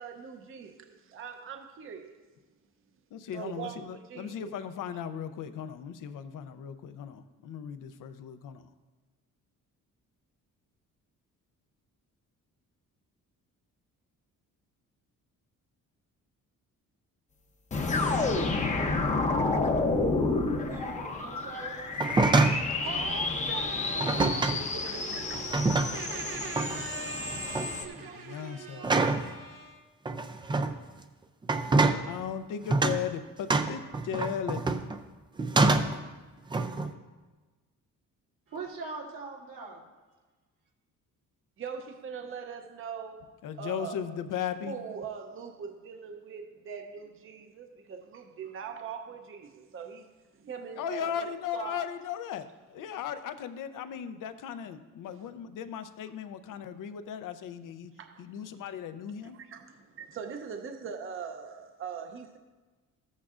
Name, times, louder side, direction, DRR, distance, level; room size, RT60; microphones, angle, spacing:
voice 1, 0.0-2.1 3.3-4.5 22.7-28.0 41.6-43.3 43.6-44.0 44.6-50.1 50.4-51.8 58.0-58.5 59.2-62.4, right 6 dB, 40° right, 0.7 m, -41 dB
voice 2, 3.1-8.7 28.2-28.9 32.1-34.6 43.4-44.8 50.8-57.9 58.2-59.4, left 8 dB, 70° left, 0.6 m, -37 dB
sound 1, 17.7-27.8, left 3 dB, 20° left, 0.7 m, -30 dB
voice 3, 20.6-22.0 23.9-26.7 27.6-29.9 38.5-39.9, right 4 dB, 85° right, 2.4 m, -44 dB
sound 2, 21.9-22.7 24.0-24.6 25.3-26.1 26.6-26.9 27.3-27.7 28.8-29.3 30.1-30.7 31.4-32.0 32.7-33.0 33.5-35.0 35.4-36.0 36.5-36.9, right 3 dB, 15° right, 0.3 m, -26 dB
14.0 x 8.3 x 2.5 m
cardioid pair, 155°, 33 cm